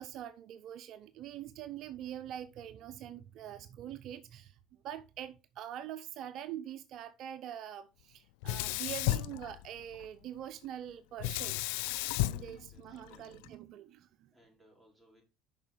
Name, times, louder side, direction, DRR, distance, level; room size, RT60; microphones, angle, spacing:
voice 1, 0.0-4.6 4.8-11.6 12.2-14.3, right 11 dB, 60° right, 0.6 m, -44 dB
Sink (filling or washing), 8.4-10.1 11.2-13.5, left 17 dB, 80° left, 0.3 m, -34 dB
voice 2, 12.3-13.4 14.3-15.2, equal, ahead, 4.5 m, -65 dB
7.3 x 5.6 x 4.4 m
supercardioid pair, 85°, 0 cm